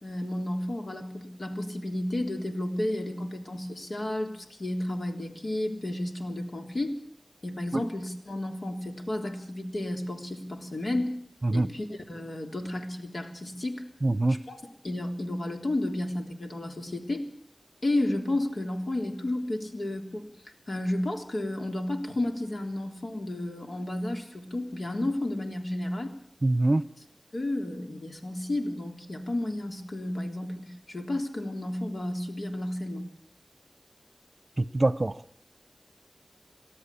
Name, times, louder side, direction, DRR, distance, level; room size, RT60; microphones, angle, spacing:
voice 1, 0.0-7.0 7.4-11.1 11.5-13.8 14.3-14.6 14.8-17.2 17.8-20.3 20.7-26.1 27.3-33.0, left 1 dB, 80° left, 3.6 m, -32 dB
voice 2, 14.0-14.4 26.4-26.8 34.6-35.2, right 2 dB, 45° right, 0.8 m, -24 dB
29.0 x 13.0 x 8.6 m
wide cardioid pair, 65°, 0 cm